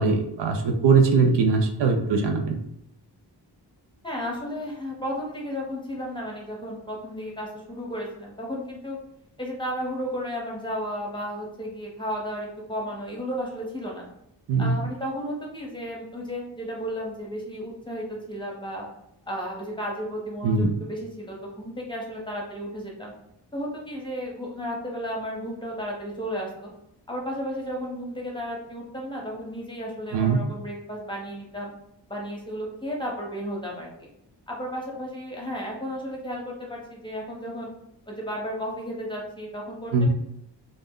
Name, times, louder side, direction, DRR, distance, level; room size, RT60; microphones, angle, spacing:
voice 1, 0.0-2.6 14.5-14.8 20.4-20.7 30.1-30.4 39.9-40.1, right 4 dB, 75° right, 3 dB, 0.5 m, -21 dB
voice 2, 4.0-9.0 9.4-14.0 14.6-18.9 19.3-23.2 23.5-26.7 27.1-31.7 32.1-34.1 34.5-37.7 38.1-40.1, equal, 10° left, -2 dB, 0.7 m, -33 dB
2.4 x 2.0 x 3.6 m, 0.79 s
wide cardioid pair, 95°, 42 cm